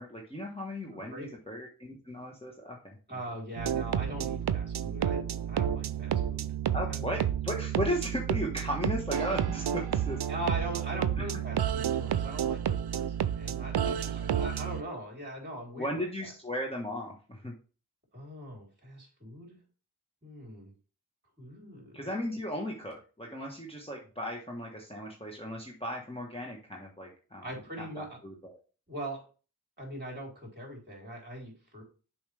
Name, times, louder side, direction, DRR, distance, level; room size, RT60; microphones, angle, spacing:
voice 1, 0.0-3.0 6.7-10.2 10.9-11.3 13.8-14.4 15.7-17.5 21.9-27.5 27.8-28.6, equal, 15° left, -1 dB, 1.2 m, -36 dB
voice 2, 0.9-1.3 3.1-5.2 5.5-6.5 6.9-7.2 10.3-13.8 14.1-15.9 18.1-19.6 20.2-20.7 21.4-22.1 27.4-28.2 28.9-29.2 29.8-31.8, right 1 dB, 25° right, -1 dB, 3.6 m, -41 dB
sound 1, 3.6-14.8, right 9 dB, 80° right, 0.5 m, -31 dB
7.1 x 4.8 x 3.3 m, 0.36 s
wide cardioid pair, 65°, 39 cm